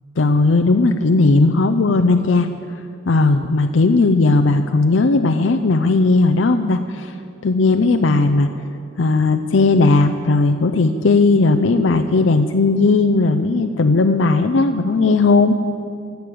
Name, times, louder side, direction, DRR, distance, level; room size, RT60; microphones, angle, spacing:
voice 1, 0.2-2.5 3.1-7.1 7.4-8.5 9.0-15.6, left 3 dB, 75° left, 7 dB, 0.6 m, -16 dB
15.5 x 9.4 x 8.5 m, 2.6 s
head